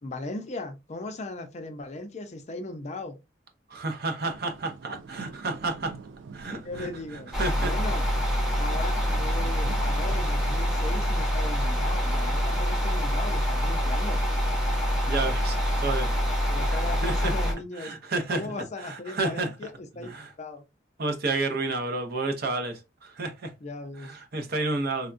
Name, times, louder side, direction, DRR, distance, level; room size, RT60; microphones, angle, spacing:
voice 1, 0.0-3.2 6.6-7.3 7.6-8.1 8.6-14.2 16.5-17.9 18.3-20.1 20.4-20.6 23.6-24.1, left 2 dB, 40° left, 0.5 m, -37 dB
voice 2, 3.7-6.0 6.3-7.7 8.4-8.6 15.1-16.1 16.4-17.3 17.8-18.5 18.8-19.5 20.0-20.3 21.0-23.5 24.0-25.1, right 3 dB, 60° right, 0.7 m, -31 dB
sound 1, 4.2-11.3, right 5 dB, 90° right, 0.4 m, -44 dB
sound 2, 7.3-17.5, equal, ahead, 0.8 m, -25 dB
3.5 x 2.2 x 2.4 m
head